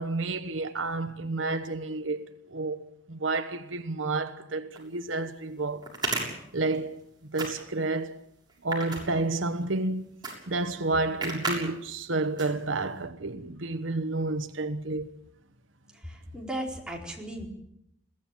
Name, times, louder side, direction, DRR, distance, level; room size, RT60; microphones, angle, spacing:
voice 1, 0.0-2.2 2.5-2.8 3.1-5.9 6.5-7.0 7.3-8.2 8.6-10.1 10.5-15.1, right 3 dB, 80° right, 1.2 m, -30 dB
sound 1, 4.7-4.8 5.8-7.0 7.3-7.9 8.5-9.6 10.2-10.4 10.7-10.8 11.2-11.6 12.0-12.1 12.4-12.9, right 3 dB, 20° right, 7.0 m, -32 dB
voice 2, 16.0-17.5, right 1 dB, 5° right, 4.4 m, -36 dB
22.5 x 17.0 x 9.0 m
head